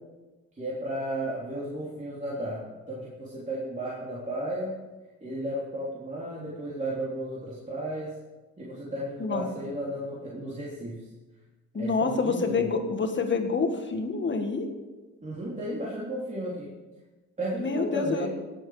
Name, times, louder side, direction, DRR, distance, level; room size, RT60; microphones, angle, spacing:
voice 1, 0.6-4.7 5.2-8.1 8.6-11.1 11.7-12.6 15.2-16.7 17.4-18.3, right 1 dB, 25° right, -7 dB, 3.5 m, -34 dB
voice 2, 11.7-14.7 17.6-18.3, left 4 dB, 40° left, 5 dB, 1.8 m, -27 dB
19.0 x 8.0 x 5.0 m, 1.2 s
cardioid pair, 90°, 30 cm